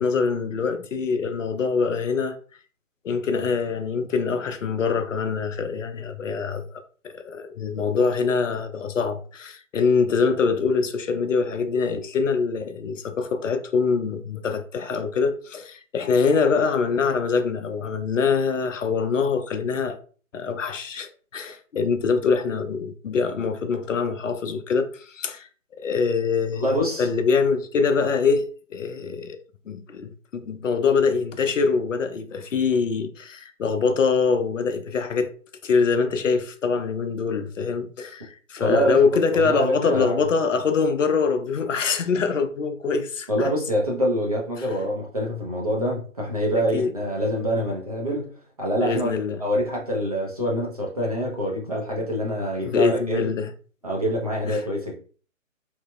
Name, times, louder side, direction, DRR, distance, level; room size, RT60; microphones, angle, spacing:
voice 1, 0.0-2.4 3.0-6.6 7.0-20.0 20.3-25.5 25.8-26.7 27.0-29.4 29.7-35.3 35.6-43.5 46.7-46.9 48.8-49.4 52.6-53.5 54.5-54.6, left 5 dB, 70° left, 0.5 m, -24 dB
voice 2, 26.5-27.1 38.6-39.0 39.3-40.2 43.3-48.3 48.6-49.1 49.4-53.3 53.8-54.9, equal, 30° right, 0.5 m, -25 dB
3.0 x 2.0 x 2.2 m
figure-of-eight pair, 140°, 40 cm